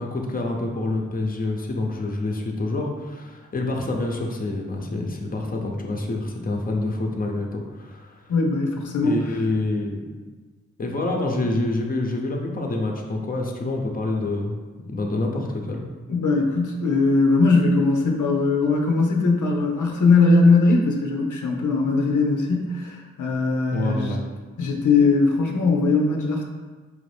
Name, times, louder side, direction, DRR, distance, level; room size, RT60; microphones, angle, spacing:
voice 1, 0.0-8.3 9.0-10.0 10.8-14.5 14.9-15.9 23.7-24.2, left 2 dB, 30° left, 1 dB, 0.6 m, -27 dB
voice 2, 8.3-9.2 16.1-24.2 24.6-26.4, left 3 dB, 90° left, 1 dB, 0.6 m, -20 dB
4.8 x 2.5 x 3.3 m, 1.4 s
cardioid pair, 65°, 30 cm